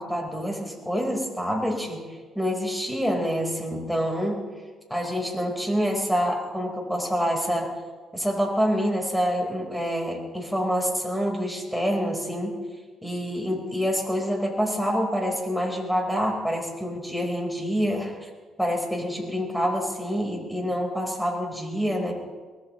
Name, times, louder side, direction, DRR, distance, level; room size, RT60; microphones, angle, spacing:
voice 1, 0.0-2.0 2.3-4.4 4.9-7.7 8.1-12.5 13.0-18.3 18.6-22.1, equal, ahead, 0 dB, 4.5 m, -27 dB
23.5 x 19.0 x 3.2 m, 1.4 s
cardioid pair, 90°, 0 cm